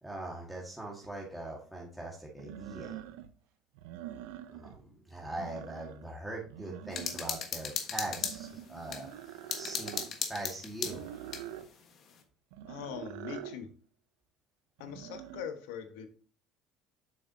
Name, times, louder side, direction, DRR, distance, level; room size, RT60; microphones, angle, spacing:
voice 1, 0.0-3.0 4.5-11.0, right 2 dB, ahead, -4 dB, 1.7 m, -42 dB
sound 1, 1.0-1.1 2.4-3.3 3.7-4.8 5.2-6.1 6.5-7.4 8.0-10.1 10.8-11.7 12.5-13.6 14.8-15.5, right 12 dB, 90° right, 0.5 m, -45 dB
sound 2, 6.9-9.0 9.5-11.5, left 7 dB, 50° left, 1.3 m, -36 dB
voice 2, 12.7-13.7 14.8-16.1, left 8 dB, 90° left, 7 dB, 1.1 m, -41 dB
7.5 x 5.8 x 2.7 m, 0.39 s
supercardioid pair, 110°, 0 cm